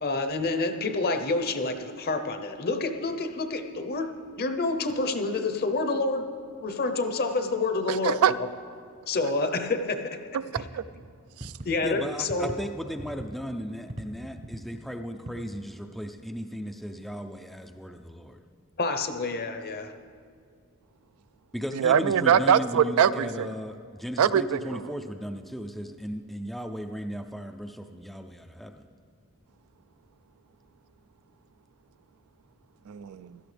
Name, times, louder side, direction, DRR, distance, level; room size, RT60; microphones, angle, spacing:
voice 1, 0.0-4.1 4.4-6.3 6.6-8.4 9.1-10.2 11.6-12.5 18.8-19.9, left 3 dB, 45° left, 8 dB, 0.8 m, -28 dB
voice 2, 7.9-8.3 10.3-10.8 11.4-11.5 21.7-23.5 24.2-24.8 32.9-33.4, right 8 dB, 70° right, 15 dB, 0.3 m, -23 dB
sound 1, 10.5-12.0 12.3-12.6 12.9-13.5 13.9-14.8 15.3-15.4 16.3-16.4, right 1 dB, 30° right, 0.7 m, -39 dB
voice 3, 11.8-18.4 21.5-28.9, equal, ahead, 5 dB, 0.4 m, -36 dB
16.5 x 12.5 x 3.4 m, 2.2 s
head